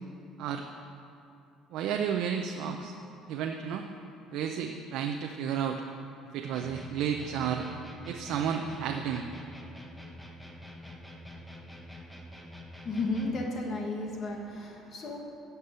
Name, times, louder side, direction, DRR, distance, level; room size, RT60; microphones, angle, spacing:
voice 1, 1.7-2.9 3.3-3.9 4.3-5.8 6.3-7.7 8.1-9.3, right 8 dB, 75° right, 3 dB, 0.6 m, -32 dB
sound 1, 6.5-13.5, left 1 dB, 5° left, 1.2 m, -46 dB
voice 2, 12.8-15.2, left 2 dB, 45° left, 0 dB, 1.5 m, -33 dB
9.7 x 6.0 x 8.2 m, 2.7 s
cardioid pair, 115°, 0 cm